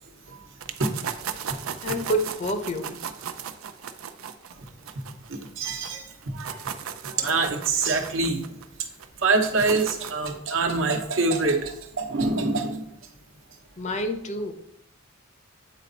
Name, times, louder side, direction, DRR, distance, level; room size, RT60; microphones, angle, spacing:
sound 1, 0.6-5.9 6.2-10.3, right 8 dB, 85° right, 0.5 m, -36 dB
voice 1, 1.8-3.1 13.8-14.5, equal, 35° left, 0.6 m, -28 dB
voice 2, 5.6-6.6 7.1-8.4 9.2-12.9, right 3 dB, 65° right, 1.0 m, -25 dB
8.5 x 4.1 x 4.0 m
head